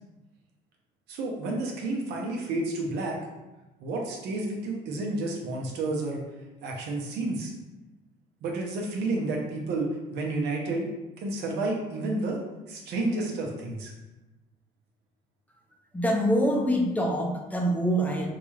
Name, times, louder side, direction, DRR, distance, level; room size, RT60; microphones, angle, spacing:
voice 1, 1.1-3.2 3.8-6.2 6.6-7.5 8.4-10.9 11.2-12.4 12.7-13.9, right 2 dB, 80° right, 0 dB, 0.8 m, -30 dB
voice 2, 15.9-18.3, equal, 10° left, 0 dB, 0.6 m, -25 dB
3.8 x 2.4 x 3.2 m, 1.1 s
cardioid pair, 110°, 17 cm